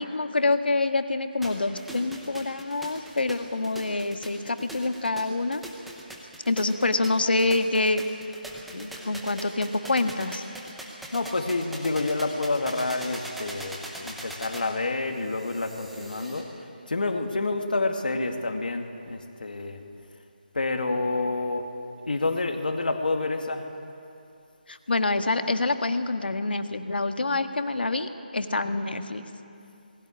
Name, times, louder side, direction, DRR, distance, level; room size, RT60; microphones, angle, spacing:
voice 1, 0.0-5.6 6.5-8.0 8.7-10.4 24.7-29.2, left 2 dB, 80° left, 8 dB, 1.7 m, -26 dB
sound 1, 1.4-16.4, right 1 dB, ahead, 0.8 m, -41 dB
voice 2, 11.1-16.5 16.9-19.8 20.5-21.7 22.1-23.7, left 3 dB, 60° left, 5 dB, 2.3 m, -28 dB
20.5 x 16.5 x 9.9 m, 2.6 s
figure-of-eight pair, 175°, 5 cm